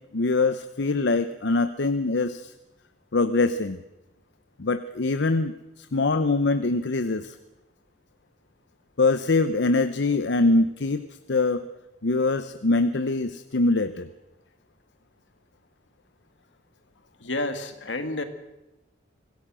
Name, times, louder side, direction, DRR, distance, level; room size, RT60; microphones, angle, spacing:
voice 1, 0.1-2.5 3.1-3.8 4.6-7.4 9.0-11.0 11.3-11.6 12.0-14.1, left 3 dB, 70° left, 11 dB, 0.8 m, -23 dB
voice 2, 17.2-18.2, left 2 dB, 85° left, 8 dB, 2.1 m, -30 dB
25.5 x 17.5 x 6.2 m, 0.98 s
head